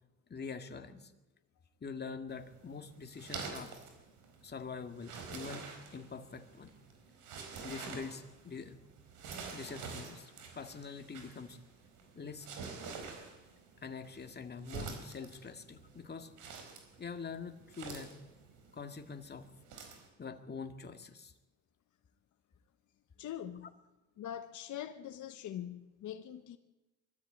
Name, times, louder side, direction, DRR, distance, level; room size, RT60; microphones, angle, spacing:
voice 1, 0.3-1.1 1.8-3.7 4.4-6.7 7.6-8.8 9.5-11.6 12.2-12.5 13.8-16.3 17.0-18.1 18.7-19.5 20.2-21.3, left 5 dB, 35° left, 2.1 m, -45 dB
sound 1, 2.3-20.1, right 5 dB, 90° right, 4.4 m, -48 dB
voice 2, 23.2-23.7 24.2-26.6, left 10 dB, 75° left, 1.3 m, -43 dB
23.0 x 13.5 x 8.6 m
cardioid pair, 90°, 30 cm